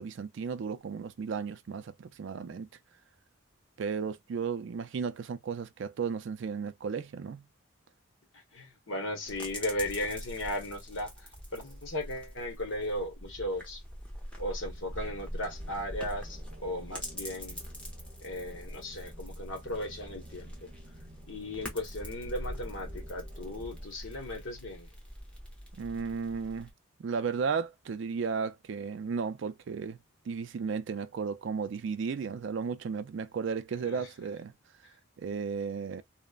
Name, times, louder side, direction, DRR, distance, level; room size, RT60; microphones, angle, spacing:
voice 1, 0.0-2.7 3.8-7.4 25.7-26.7 27.0-30.0 30.3-34.5 35.2-36.0, right 5 dB, 60° right, 0.3 m, -34 dB
voice 2, 8.3-13.8 14.4-17.6 18.2-20.7 21.3-24.9 33.8-34.1, left 1 dB, 70° left, 1.1 m, -36 dB
sound 1, 9.3-26.7, equal, 5° left, 0.8 m, -44 dB
sound 2, 14.6-23.9, right 1 dB, 30° right, 0.7 m, -53 dB
3.1 x 2.1 x 2.3 m
head